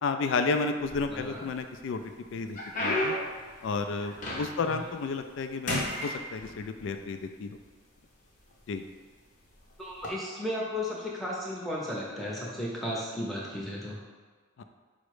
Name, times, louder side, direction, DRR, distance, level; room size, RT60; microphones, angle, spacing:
voice 1, 0.0-3.2 3.6-7.6 8.7-8.8 14.6-14.7, left 4 dB, 65° left, 7 dB, 0.3 m, -32 dB
sound 1, 0.8-1.5 2.0-4.8 5.1-5.4 5.7-6.9 7.7-7.8 8.5-8.7 9.9-10.1, left 1 dB, 35° left, 0.7 m, -33 dB
voice 2, 1.1-1.4 4.7-4.8 9.8-14.0, left 1 dB, ahead, -5 dB, 0.7 m, -34 dB
5.0 x 2.1 x 4.7 m, 1.5 s
head